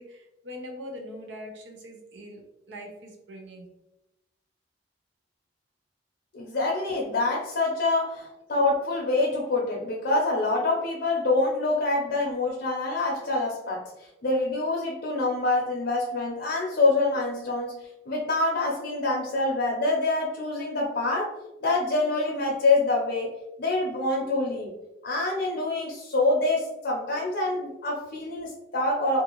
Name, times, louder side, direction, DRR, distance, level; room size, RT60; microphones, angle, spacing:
voice 1, 0.0-3.7 27.0-27.2, equal, 80° right, 2 dB, 0.6 m, -42 dB
voice 2, 6.3-13.9 14.2-17.8 18.1-21.4 21.6-23.3 23.6-24.7 25.0-29.2, left 2 dB, 60° left, -2 dB, 0.6 m, -26 dB
2.6 x 2.4 x 2.8 m, 0.93 s
head